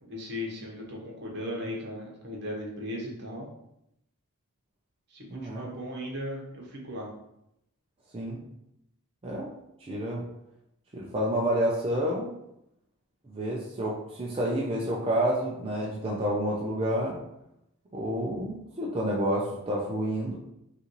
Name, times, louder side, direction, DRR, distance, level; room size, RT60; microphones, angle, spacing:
voice 1, 0.0-3.5 5.1-7.1, left 1 dB, 50° right, -2 dB, 1.1 m, -37 dB
voice 2, 5.3-5.7 8.1-8.4 9.2-9.5 9.8-10.2 10.9-12.3 13.3-17.2 17.9-20.4, equal, 25° right, -3 dB, 0.5 m, -29 dB
5.5 x 2.5 x 3.0 m, 0.83 s
head